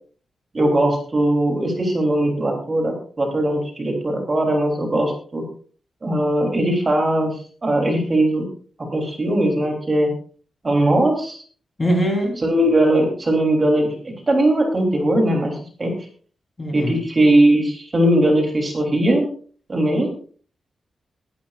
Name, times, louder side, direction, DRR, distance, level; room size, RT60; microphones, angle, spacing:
voice 1, 0.5-5.4 6.0-8.5 8.9-10.1 10.6-11.4 12.4-15.9 16.7-19.2 19.7-20.1, right 1 dB, 25° right, 2 dB, 3.3 m, -19 dB
voice 2, 11.8-12.4 16.6-17.0 20.0-20.3, equal, 25° left, 0 dB, 3.8 m, -23 dB
21.5 x 11.0 x 2.5 m, 0.43 s
wide cardioid pair, 165°, 0 cm